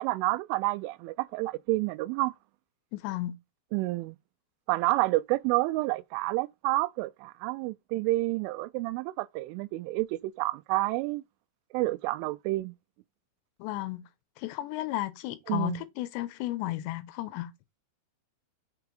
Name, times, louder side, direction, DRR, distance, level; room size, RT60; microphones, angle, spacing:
voice 1, 0.0-2.3 3.7-4.2 4.7-11.2 11.7-12.7 15.5-15.8, right 19 dB, 85° right, 3.1 m, -29 dB
voice 2, 2.9-3.4 13.6-14.0 14.4-17.5, left 15 dB, 80° left, 2.8 m, -33 dB
6.9 x 4.6 x 4.8 m
omnidirectional pair, 5.5 m